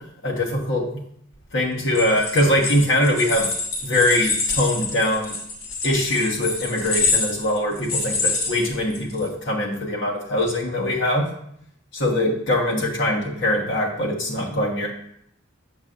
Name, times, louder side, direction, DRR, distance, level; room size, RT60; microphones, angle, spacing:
voice 1, 0.2-0.8 1.5-3.5 3.8-5.3 5.8-11.3 11.9-14.9, left 1 dB, 60° left, -1 dB, 1.2 m, -22 dB
sound 1, 1.8-9.2, left 3 dB, 75° left, 1.4 m, -26 dB
6.4 x 6.2 x 2.5 m, 0.71 s
head